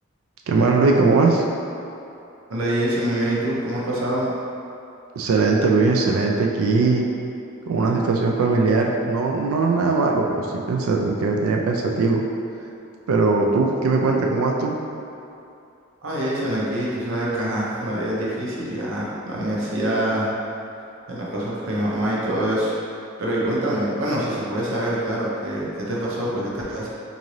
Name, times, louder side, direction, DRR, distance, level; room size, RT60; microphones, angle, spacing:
voice 1, 0.5-1.4 5.2-7.1 7.7-12.2 13.1-14.8, right 3 dB, 85° right, 1 dB, 0.3 m, -20 dB
voice 2, 2.5-4.3 16.0-20.3 21.1-22.7 23.2-26.9, right 1 dB, 65° right, -6 dB, 0.7 m, -25 dB
3.8 x 2.6 x 3.0 m, 2.7 s
head